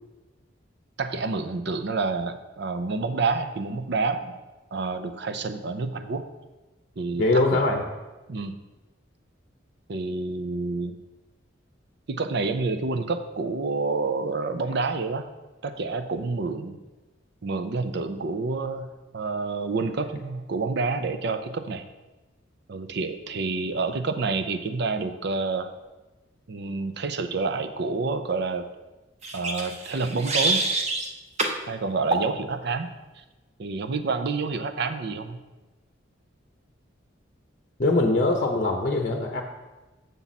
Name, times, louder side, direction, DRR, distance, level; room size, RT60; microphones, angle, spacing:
voice 1, 1.0-4.3 4.7-6.3 7.0-7.8 8.3-8.6 9.9-11.0 12.1-15.2 15.6-16.8 17.4-18.9 19.1-21.9 22.7-25.7 26.5-28.7 29.3-30.7 31.7-32.9 33.6-35.4, right 3 dB, 60° right, 9 dB, 0.6 m, -28 dB
voice 2, 7.2-7.8 37.8-39.4, left 2 dB, 40° left, 3 dB, 0.7 m, -22 dB
sound 1, 29.2-31.1 31.4-31.6 32.1-32.3, right 3 dB, 35° right, 0.9 m, -26 dB
7.3 x 6.8 x 4.1 m, 1.1 s
head